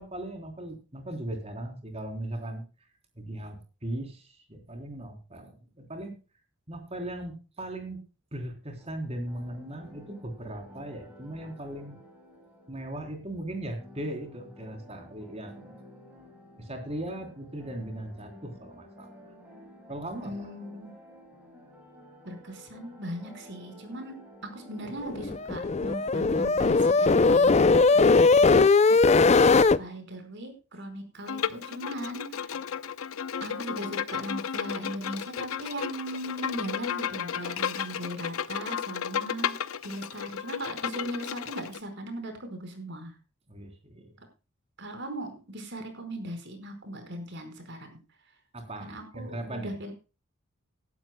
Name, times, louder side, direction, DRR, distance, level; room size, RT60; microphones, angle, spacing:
voice 1, 0.0-2.6 3.2-6.1 6.7-8.0 8.3-12.0 12.7-15.7 16.6-19.1 19.9-20.5 43.5-44.1 48.5-49.8, right 1 dB, 30° right, 5 dB, 3.6 m, -38 dB
sound 1, 8.8-26.2, left 1 dB, 10° right, 5.7 m, -52 dB
voice 2, 20.2-20.9 22.2-24.2 24.5-28.8 29.6-32.5 33.4-43.1 44.8-48.0 48.8-49.9, right 1 dB, 55° right, 6 dB, 4.9 m, -39 dB
sound 2, 25.1-29.8, left 4 dB, 30° left, 0.5 m, -19 dB
Bowed string instrument, 31.3-41.8, left 8 dB, 80° left, 0.8 m, -33 dB
19.0 x 12.0 x 2.2 m, 0.32 s
head